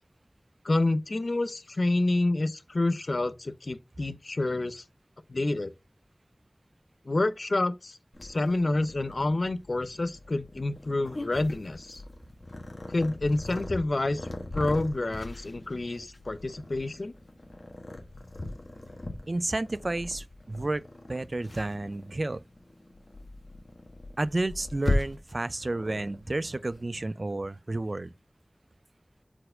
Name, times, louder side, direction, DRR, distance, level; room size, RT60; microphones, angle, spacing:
voice 1, 0.6-4.8 5.3-5.7 7.1-12.0 12.9-14.3 14.5-17.1, left 2 dB, 80° left, 0.5 m, -28 dB
Purr, 8.1-26.8, left 2 dB, 60° left, 1.3 m, -38 dB
voice 2, 19.3-20.8 21.1-22.4 24.2-28.1, right 2 dB, 60° right, 0.3 m, -31 dB
4.5 x 4.3 x 4.9 m
wide cardioid pair, 45°, 0 cm